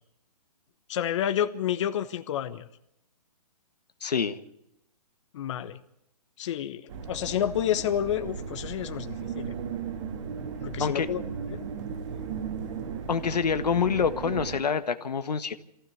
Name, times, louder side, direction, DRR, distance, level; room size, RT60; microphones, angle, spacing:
voice 1, 0.9-2.6 5.3-5.8 6.4-9.5 10.6-11.2 11.5-11.6, left 10 dB, 50° left, 9 dB, 1.2 m, -29 dB
voice 2, 4.0-4.4 10.8-11.1 13.1-15.5, left 6 dB, 90° left, 10 dB, 1.6 m, -26 dB
sound 1, 6.9-14.6, right 6 dB, 50° right, 2.1 m, -36 dB
23.5 x 15.5 x 7.2 m, 0.81 s
hypercardioid pair, 150°, 20 cm